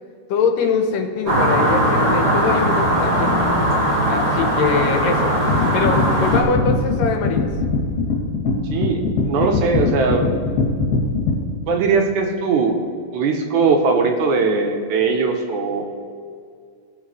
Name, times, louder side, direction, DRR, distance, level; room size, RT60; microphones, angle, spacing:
voice 1, 0.3-3.3 4.1-5.4 5.7-7.5, left 5 dB, 80° left, 4 dB, 2.6 m, -22 dB
sound 1, 1.3-6.4, right 1 dB, 40° right, 2.6 m, -19 dB
sound 2, 5.5-11.4, left 4 dB, 60° left, 3.6 m, -21 dB
voice 2, 8.7-10.3 11.7-12.8 13.1-15.9, right 4 dB, 75° right, 3 dB, 2.1 m, -20 dB
18.0 x 7.3 x 3.2 m, 2.2 s
omnidirectional pair, 3.9 m